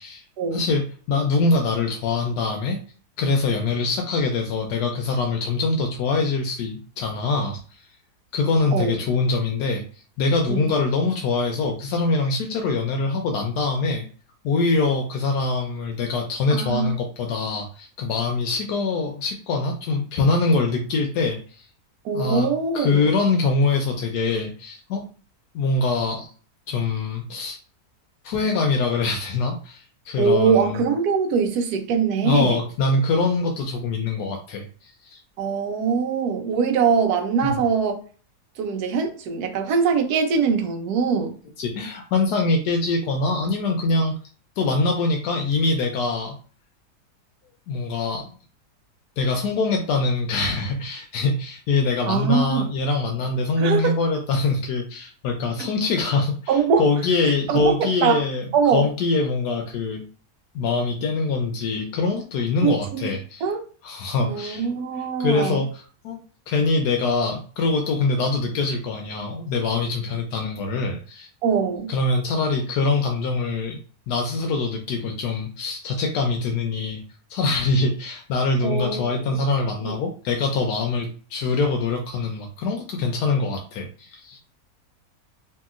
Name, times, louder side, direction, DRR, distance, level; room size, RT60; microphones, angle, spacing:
voice 1, 0.5-2.8 3.2-7.8 8.3-9.8 10.2-14.0 14.4-21.7 22.1-22.5 22.7-25.1 25.5-26.3 26.7-27.6 28.2-30.8 32.2-35.2 37.4-37.6 41.6-44.1 44.6-46.3 47.7-48.3 49.2-60.0 60.5-63.5 63.8-64.7 65.2-66.2 66.5-71.3 71.9-73.8 74.1-77.0 77.3-84.4, left 3 dB, 85° left, 1.1 m, -24 dB
voice 2, 16.5-17.0 22.0-23.1 30.2-32.6 35.4-38.0 38.6-41.3 52.0-52.7 53.6-53.9 56.5-56.8 57.2-58.2 58.5-58.9 62.6-63.1 63.4-63.6 64.2-65.6 71.4-71.9 78.6-79.3 79.8-79.9, right 6 dB, 80° right, 1.1 m, -22 dB
2.8 x 2.8 x 2.4 m
omnidirectional pair, 1.7 m